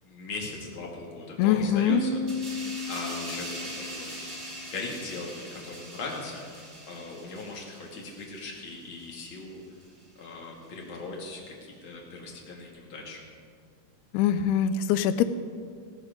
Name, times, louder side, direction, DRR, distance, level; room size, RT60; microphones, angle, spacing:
voice 1, 0.0-4.4 4.6-9.6 10.1-13.2, left 3 dB, 35° left, -2 dB, 2.4 m, -39 dB
voice 2, 1.4-2.0 14.1-15.2, left 9 dB, 85° left, 12 dB, 2.3 m, -23 dB
Piano, 1.9-5.3, left 1 dB, 90° right, 3.5 m, -35 dB
sound 1, 2.3-9.4 9.8-10.0, right 1 dB, 25° right, 3.2 m, -42 dB
16.0 x 14.5 x 5.3 m, 2.1 s
omnidirectional pair, 5.3 m